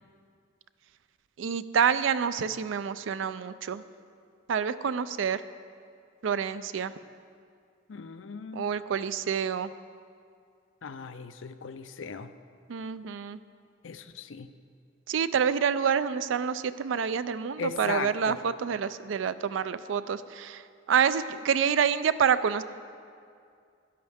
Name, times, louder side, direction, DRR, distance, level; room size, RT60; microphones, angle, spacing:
voice 1, 1.4-3.8 4.5-5.4 6.2-6.9 8.5-9.7 12.7-13.4 15.1-20.6 20.9-22.6, right 7 dB, 85° right, 14 dB, 0.4 m, -27 dB
voice 2, 7.9-8.7 10.8-12.3 13.8-14.5 17.6-18.4, left 5 dB, 85° left, 10 dB, 0.5 m, -37 dB
13.5 x 10.5 x 3.5 m, 2.3 s
head